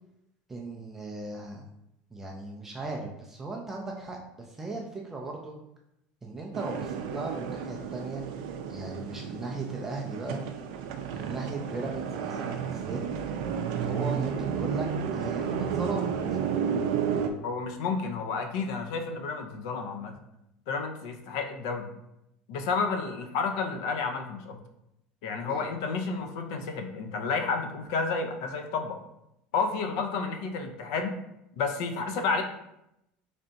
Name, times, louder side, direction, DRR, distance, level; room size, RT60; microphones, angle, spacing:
voice 1, 0.5-1.6 2.1-5.5 6.2-8.2 8.7-10.4 11.1-13.0 13.8-16.1 25.4-25.6, right 2 dB, 10° right, -1 dB, 0.3 m, -37 dB
sound 1, 6.5-17.3, right 7 dB, 80° right, 0.4 m, -32 dB
voice 2, 17.4-20.2 20.7-21.9 22.5-24.6 25.2-29.0 29.5-31.1 31.5-32.4, left 4 dB, 70° left, 5 dB, 0.5 m, -31 dB
3.3 x 2.6 x 3.9 m, 0.83 s
cardioid pair, 175°, 3 cm